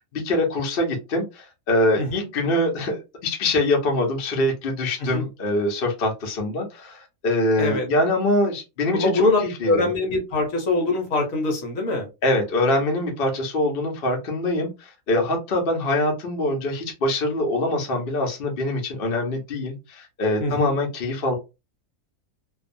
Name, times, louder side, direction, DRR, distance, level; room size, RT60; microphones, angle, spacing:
voice 1, 0.1-9.1 9.4-9.9 12.2-21.4, left 1 dB, 45° left, 0.8 m, -24 dB
voice 2, 7.6-7.9 8.9-12.1 20.4-20.7, left 2 dB, 65° left, 1.1 m, -23 dB
2.6 x 2.3 x 2.5 m
omnidirectional pair, 1.7 m